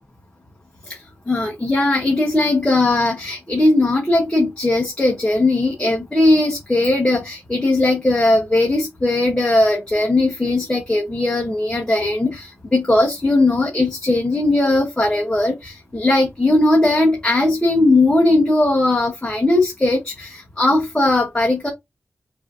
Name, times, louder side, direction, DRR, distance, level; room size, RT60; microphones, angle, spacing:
voice 1, 0.8-21.7, left 2 dB, 15° left, 1.0 m, -18 dB
5.9 x 2.7 x 2.6 m
wide cardioid pair, 120°, 5 cm